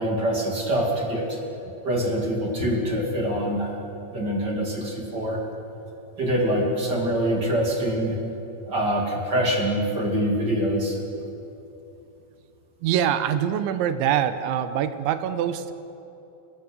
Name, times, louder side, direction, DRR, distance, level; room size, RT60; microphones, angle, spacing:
voice 1, 0.0-1.4 1.8-3.8 4.1-5.4 6.2-8.2 8.7-11.0, equal, 30° right, 0 dB, 2.2 m, -24 dB
voice 2, 12.8-15.7, right 10 dB, 75° right, 11 dB, 3.0 m, -24 dB
26.5 x 20.0 x 8.3 m, 2.9 s
omnidirectional pair, 5.8 m